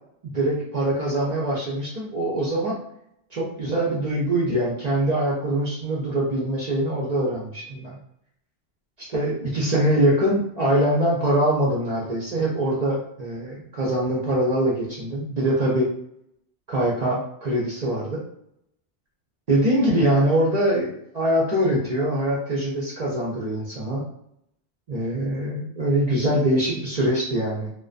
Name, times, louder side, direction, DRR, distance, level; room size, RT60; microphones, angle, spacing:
voice 1, 0.2-2.8 3.3-8.0 9.0-15.9 16.7-18.2 19.5-24.0 24.9-27.7, right 1 dB, 50° right, -5 dB, 0.5 m, -23 dB
2.3 x 2.2 x 2.4 m, 0.73 s
omnidirectional pair, 1.2 m